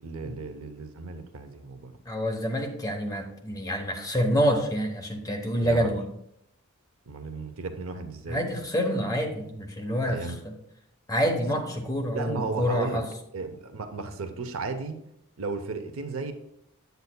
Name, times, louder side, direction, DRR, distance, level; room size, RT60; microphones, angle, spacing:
voice 1, 0.0-1.9 5.6-6.0 7.1-8.5 10.1-10.4 11.2-11.5 12.1-13.0 13.3-15.0 15.4-16.3, right 3 dB, 65° right, 8 dB, 0.6 m, -34 dB
voice 2, 2.1-6.1 8.3-10.2 10.4-10.5 11.1-13.0, equal, 15° left, 2 dB, 0.9 m, -27 dB
8.0 x 7.8 x 2.2 m, 0.75 s
head